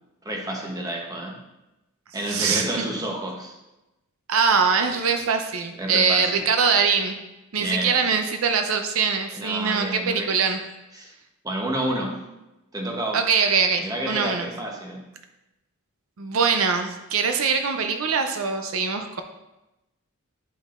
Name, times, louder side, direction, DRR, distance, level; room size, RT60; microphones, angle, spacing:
voice 1, 0.2-1.4 2.1-3.6 5.8-6.4 7.5-8.1 9.4-10.4 10.9-11.1 11.4-12.2 12.7-13.3 13.8-15.0, right 1 dB, 20° right, 0 dB, 0.9 m, -29 dB
voice 2, 2.3-2.9 4.3-7.2 7.5-10.6 13.1-14.5 16.2-19.2, right 5 dB, 75° right, 6 dB, 0.5 m, -23 dB
8.5 x 5.3 x 2.5 m, 0.97 s
head